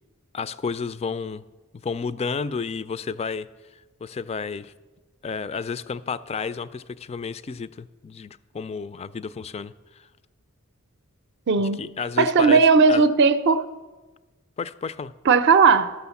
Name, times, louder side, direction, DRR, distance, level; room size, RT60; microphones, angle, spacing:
voice 1, 0.3-1.4 1.8-3.5 4.0-4.7 5.2-9.7 11.6-12.6 12.9-13.0 14.6-15.1, left 5 dB, 30° left, 0.3 m, -31 dB
voice 2, 11.5-11.8 12.2-13.7 15.3-15.9, right 5 dB, 50° right, 0.5 m, -17 dB
13.0 x 6.3 x 7.0 m
head